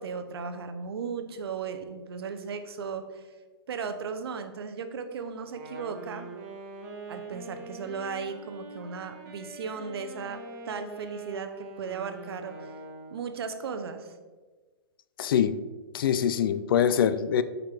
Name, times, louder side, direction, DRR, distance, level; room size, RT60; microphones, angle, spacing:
voice 1, 0.0-3.3 3.7-6.3 7.1-10.4 10.7-12.5 13.1-14.1, right 5 dB, 75° right, 8 dB, 0.7 m, -36 dB
Wind instrument woodwind instrument, 5.4-13.4, right 2 dB, 45° right, 1.4 m, -43 dB
voice 2, 15.2-15.6 15.9-17.4, left 8 dB, 60° left, 14 dB, 0.4 m, -24 dB
5.7 x 5.2 x 3.3 m, 1.3 s
hypercardioid pair, 155°, 13 cm